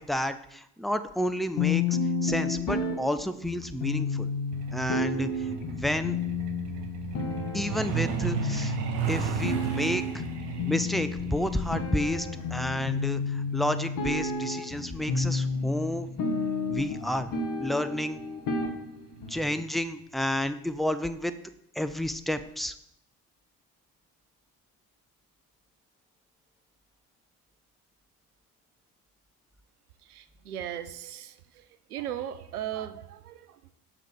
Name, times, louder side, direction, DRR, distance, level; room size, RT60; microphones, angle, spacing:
voice 1, 0.0-1.8 2.2-4.3 4.7-6.1 7.5-8.8 9.1-10.2 10.6-16.1 16.7-17.3 17.6-18.2 19.3-21.3 21.7-22.7, equal, ahead, 10 dB, 0.6 m, -30 dB
sound 1, 1.6-19.5, left 4 dB, 45° left, 1.7 m, -31 dB
Truck, 4.5-16.8 18.0-18.2 18.6-18.8 19.2-19.4 19.8-19.9 20.3-20.4, right 8 dB, 60° right, 1.2 m, -36 dB
voice 2, 30.0-33.6, right 11 dB, 80° right, 13 dB, 0.6 m, -38 dB
7.4 x 5.9 x 6.8 m, 0.76 s
figure-of-eight pair, 45°, 45 cm